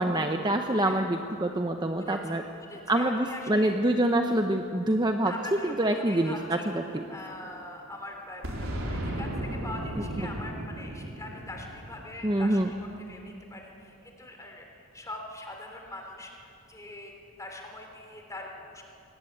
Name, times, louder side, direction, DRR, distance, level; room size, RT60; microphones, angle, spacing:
voice 1, 0.0-2.4 2.9-5.3 5.6-7.0 12.2-12.7, right 1 dB, 20° right, 5 dB, 0.8 m, -26 dB
voice 2, 2.0-3.7 5.2-18.8, left 2 dB, 15° left, 2 dB, 3.3 m, -43 dB
Boom, 8.4-13.1, right 1 dB, 90° right, 4.2 m, -35 dB
23.0 x 19.0 x 8.7 m, 2.7 s
head